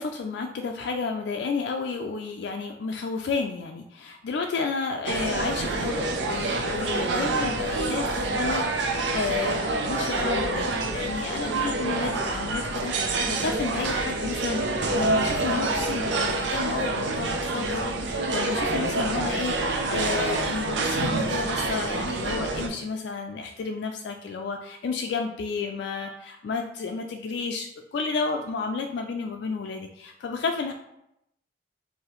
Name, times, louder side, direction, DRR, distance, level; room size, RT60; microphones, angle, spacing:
voice 1, 0.0-30.7, left 4 dB, 75° left, 3 dB, 0.3 m, -31 dB
sound 1, 5.1-22.7, right 2 dB, 80° right, 0.5 m, -27 dB
4.7 x 2.7 x 3.0 m, 0.80 s
head